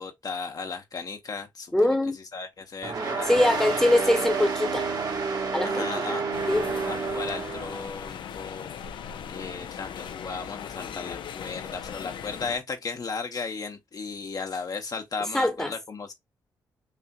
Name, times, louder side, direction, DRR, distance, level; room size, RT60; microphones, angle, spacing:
voice 1, 0.0-2.0 2.3-3.8 5.6-6.3 6.9-8.8 9.3-16.1, left 4 dB, 50° left, 0.9 m, -35 dB
voice 2, 1.7-2.2 3.3-4.9 5.5-6.2 6.5-6.6 15.3-15.7, left 1 dB, 5° left, 1.0 m, -23 dB
sound 1, 2.8-7.9, right 4 dB, 55° right, 1.5 m, -29 dB
sound 2, 6.3-12.6, left 8 dB, 80° left, 0.5 m, -39 dB
5.6 x 2.4 x 2.3 m
cardioid pair, 65°, 8 cm